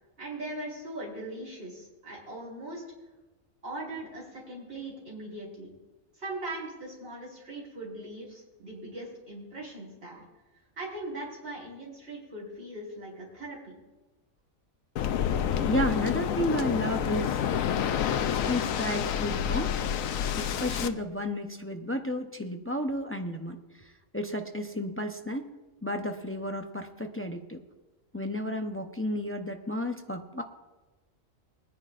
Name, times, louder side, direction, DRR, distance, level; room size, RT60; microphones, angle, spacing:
voice 1, 0.2-2.8 3.6-5.7 6.2-10.2 10.8-13.7, right 1 dB, 50° right, -6 dB, 5.2 m, -40 dB
Waves surf, 15.0-20.9, left 8 dB, 80° left, 1.0 m, -28 dB
voice 2, 15.6-17.4 18.3-19.8 20.4-25.5 25.8-27.6 28.1-30.4, left 1 dB, 15° left, 4 dB, 0.4 m, -32 dB
22.0 x 10.0 x 2.5 m, 1.2 s
omnidirectional pair, 1.4 m